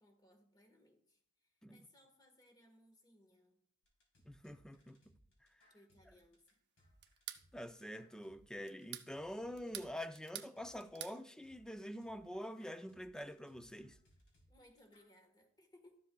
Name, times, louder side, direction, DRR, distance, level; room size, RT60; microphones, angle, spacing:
voice 1, 0.0-3.6 5.7-6.4 14.5-16.0, left 1 dB, 20° left, 1.4 m, -66 dB
sound 1, 3.8-15.2, equal, 70° left, 3.6 m, -70 dB
voice 2, 4.2-5.0 7.5-14.0, equal, 5° left, 0.4 m, -46 dB
sound 2, 7.0-7.5 8.7-9.1 9.6-10.5 10.8-11.2, right 12 dB, 50° right, 0.6 m, -47 dB
13.0 x 7.4 x 2.3 m
head